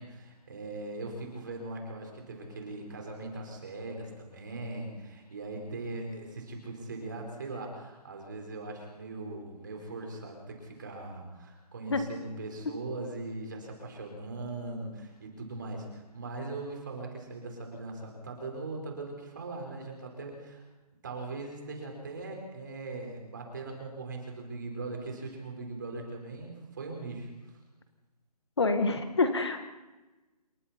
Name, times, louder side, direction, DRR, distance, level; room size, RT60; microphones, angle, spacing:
voice 1, 0.0-20.6 21.0-27.3, right 2 dB, 30° right, 2 dB, 4.7 m, -40 dB
voice 2, 28.6-29.7, left 3 dB, 40° left, 7 dB, 1.7 m, -27 dB
28.0 x 23.0 x 4.4 m, 1.1 s
hypercardioid pair, 180°, 21 cm